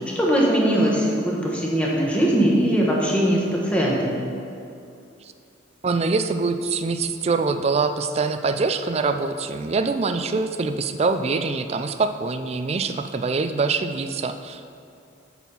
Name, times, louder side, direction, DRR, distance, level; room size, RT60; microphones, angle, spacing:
voice 1, 0.1-4.2, equal, 5° left, -4 dB, 1.1 m, -20 dB
voice 2, 5.8-14.6, right 4 dB, 30° right, 8 dB, 0.3 m, -24 dB
8.2 x 4.3 x 5.6 m, 2.6 s
head